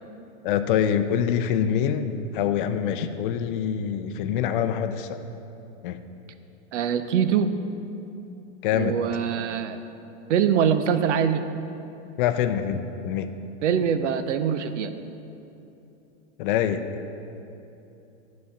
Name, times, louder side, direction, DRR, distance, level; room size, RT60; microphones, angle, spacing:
voice 1, 0.4-5.2 5.8-6.0 8.6-9.0 12.2-13.3 16.4-17.0, left 8 dB, 50° left, 9 dB, 0.5 m, -25 dB
voice 2, 6.7-7.5 8.7-9.8 10.3-11.4 13.6-14.9, right 8 dB, 85° right, 10 dB, 0.7 m, -23 dB
9.8 x 4.2 x 7.0 m, 2.9 s
supercardioid pair, 150°, 35 cm